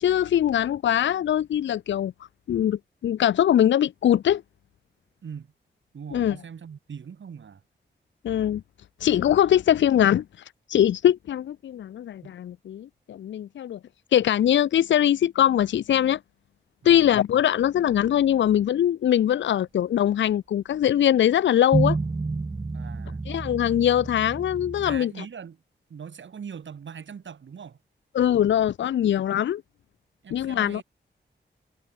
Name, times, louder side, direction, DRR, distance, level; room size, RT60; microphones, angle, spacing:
voice 1, 0.0-2.1 2.5-4.4 6.1-6.4 8.2-8.6 9.0-10.2 10.7-13.8 14.1-16.2 16.8-22.0 23.3-25.1 28.1-29.6 30.3-30.8, left 10 dB, 80° left, 0.4 m, -22 dB
voice 2, 5.2-5.5 5.9-7.6 12.2-12.3 16.8-17.1 22.7-23.2 24.8-25.6 25.9-27.8 30.2-30.8, right 7 dB, 85° right, 4.2 m, -41 dB
sound 1, 21.7-25.0, right 3 dB, 20° right, 0.7 m, -29 dB
wide cardioid pair, 175°, 19 cm